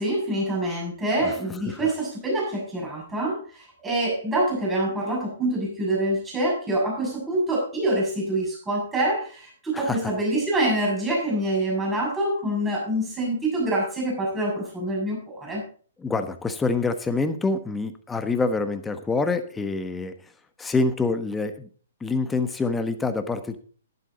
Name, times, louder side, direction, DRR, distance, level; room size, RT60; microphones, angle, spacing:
voice 1, 0.0-15.6, right 1 dB, 15° right, -3 dB, 6.6 m, -26 dB
voice 2, 16.0-20.1 20.6-21.7 22.0-23.6, left 3 dB, 10° left, 9 dB, 1.2 m, -26 dB
11.5 x 11.0 x 4.0 m, 0.42 s
hypercardioid pair, 125°, 0 cm